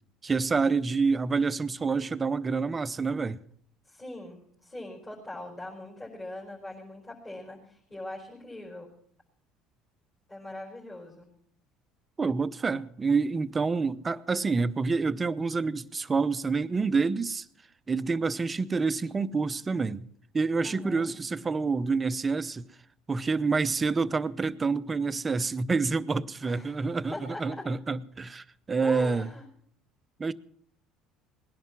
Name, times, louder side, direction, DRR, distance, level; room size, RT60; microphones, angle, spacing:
voice 1, 0.2-3.4 12.2-17.5 17.9-20.1 20.3-22.7 23.1-29.3 30.2-30.3, right 4 dB, 25° right, 0.7 m, -27 dB
voice 2, 3.9-8.9 10.3-11.3 20.6-21.1 26.4-27.7 28.8-29.4, left 1 dB, 25° left, 4.8 m, -42 dB
19.5 x 11.0 x 6.1 m
supercardioid pair, 85°, 0 cm